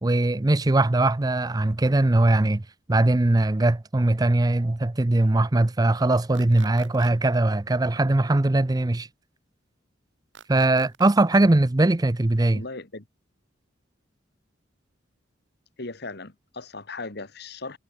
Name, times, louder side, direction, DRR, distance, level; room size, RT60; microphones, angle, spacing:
voice 1, 0.0-2.6 2.9-9.1 10.5-12.6, right 2 dB, 20° right, 0.6 m, -21 dB
sound 1, 6.3-7.1 10.3-11.1, right 6 dB, 90° right, 2.5 m, -46 dB
voice 2, 12.5-13.0 15.8-17.8, left 3 dB, 60° left, 2.1 m, -37 dB
head